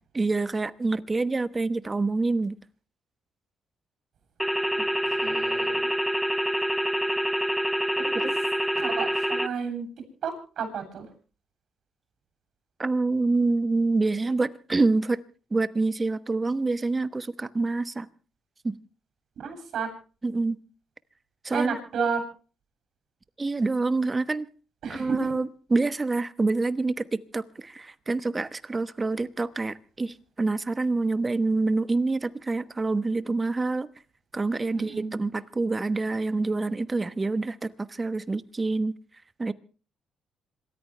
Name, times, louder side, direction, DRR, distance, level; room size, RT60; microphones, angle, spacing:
voice 1, 0.1-2.6 8.1-8.3 12.8-15.2 15.5-18.1 18.6-18.8 20.2-20.6 21.4-21.7 23.4-24.5 24.9-33.9 34.3-38.9 39.4-39.5, right 3 dB, 25° right, 1.1 m, -26 dB
sound 1, 4.4-9.5, equal, ahead, 0.8 m, -26 dB
voice 2, 5.2-5.9 8.0-8.3 8.7-9.9 10.2-11.1 19.4-19.9 21.5-22.2 24.8-25.1 34.7-35.2, right 6 dB, 65° right, 7.9 m, -32 dB
27.0 x 14.0 x 3.3 m
cardioid pair, 90°, 0 cm